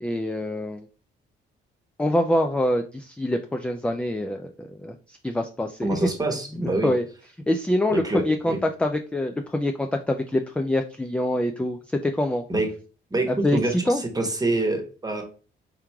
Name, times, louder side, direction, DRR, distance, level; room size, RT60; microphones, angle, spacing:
voice 1, 0.0-0.9 2.0-7.0 7.5-12.4 13.3-13.6 13.9-14.0, left 1 dB, 5° left, 5 dB, 0.3 m, -25 dB
voice 2, 5.8-6.9 7.9-8.6 12.5-12.7 13.1-15.2, right 2 dB, 20° right, 4 dB, 1.1 m, -26 dB
3.6 x 3.1 x 3.4 m, 0.38 s
cardioid pair, 90°, 20 cm